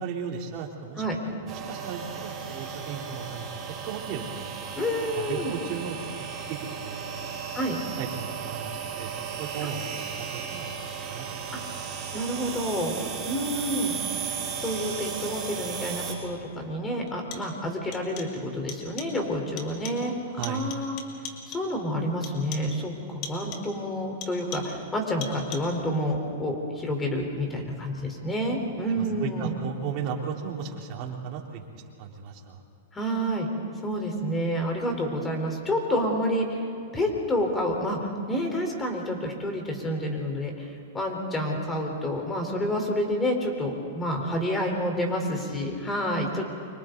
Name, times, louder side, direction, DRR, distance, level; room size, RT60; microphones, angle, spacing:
voice 1, 0.0-3.5 3.9-4.6 5.2-6.0 6.3-6.6 6.8-7.1 8.0-9.1 9.4-10.7 11.1-12.1 20.3-20.7 28.9-31.7 32.0-32.6, right 6 dB, 45° right, -1 dB, 3.6 m, -36 dB
sound 1, 1.5-16.1, right 7 dB, 25° right, 5.2 m, -35 dB
voice 2, 4.8-5.6 7.5-7.8 9.6-9.7 11.5-11.6 12.1-13.0 13.2-14.0 14.6-21.0 21.5-29.5 32.9-33.5 33.8-36.6 36.9-46.4, equal, 15° left, 2 dB, 4.2 m, -29 dB
sound 2, 17.1-17.6 17.9-18.4 18.7-19.2 19.6-20.1 20.4-21.8 22.2-22.8 23.2-23.8 24.2-24.9 25.2-25.8, left 6 dB, 45° left, 3.0 m, -41 dB
29.5 x 25.0 x 4.1 m, 2.6 s
hypercardioid pair, 135°, 0 cm